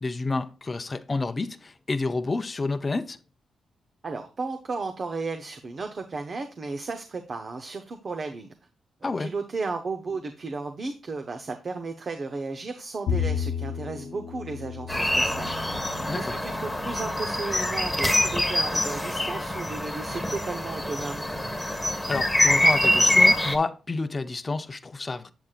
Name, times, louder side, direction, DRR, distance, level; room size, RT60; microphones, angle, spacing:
voice 1, 0.0-3.2 9.0-9.3 16.1-16.4 22.1-25.3, left 3 dB, 30° left, 0.6 m, -29 dB
voice 2, 4.0-8.5 9.0-15.5 16.1-21.3, right 3 dB, 50° right, 0.8 m, -34 dB
Bowed string instrument, 13.1-19.4, left 7 dB, 90° left, 0.7 m, -35 dB
sound 1, 14.9-23.5, left 1 dB, 5° left, 1.4 m, -24 dB
8.0 x 7.3 x 2.4 m
cardioid pair, 80°, 0 cm